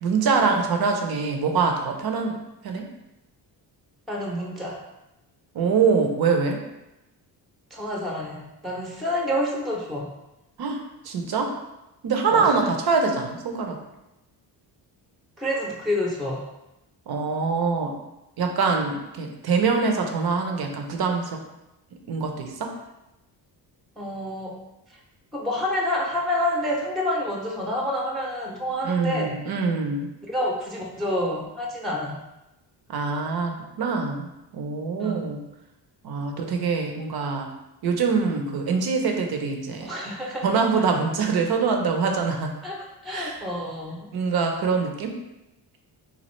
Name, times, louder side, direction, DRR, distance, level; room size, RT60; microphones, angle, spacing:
voice 1, 0.0-2.4 2.6-2.9 5.5-6.6 10.6-11.5 12.0-13.8 17.1-17.9 18.4-21.4 22.1-22.7 28.8-30.1 32.9-34.3 34.5-35.4 36.0-37.5 37.8-39.9 40.4-42.5 43.1-43.4 44.1-45.1, right 5 dB, 55° right, 3 dB, 0.7 m, -24 dB
voice 2, 4.1-4.8 7.7-10.1 12.3-12.7 15.4-16.4 24.0-24.6 25.3-29.4 30.3-32.2 35.0-35.3 39.8-40.5 42.6-44.1, left 1 dB, ahead, -1 dB, 0.5 m, -28 dB
4.2 x 2.4 x 3.1 m, 0.93 s
cardioid pair, 85°, 44 cm